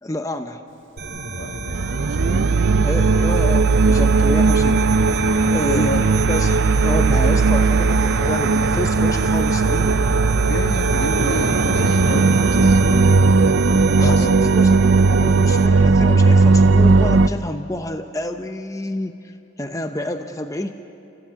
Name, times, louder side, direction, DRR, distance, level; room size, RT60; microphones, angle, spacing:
voice 1, 0.0-0.6 2.8-4.8 5.5-5.9 6.3-10.0 14.0-20.7, left 1 dB, 15° left, 7 dB, 0.7 m, -29 dB
sound 1, 1.0-15.7, right 2 dB, 55° right, 2.7 m, -28 dB
voice 2, 1.3-2.5 5.5-6.0 10.4-13.1 13.9-14.5 15.4-15.6, left 1 dB, 65° left, 6 dB, 1.2 m, -30 dB
sound 2, 1.7-17.3, right 4 dB, 85° right, 0.5 m, -17 dB
sound 3, 3.3-13.5, right 1 dB, 40° right, 2.4 m, -32 dB
30.0 x 16.5 x 8.3 m, 2.7 s
head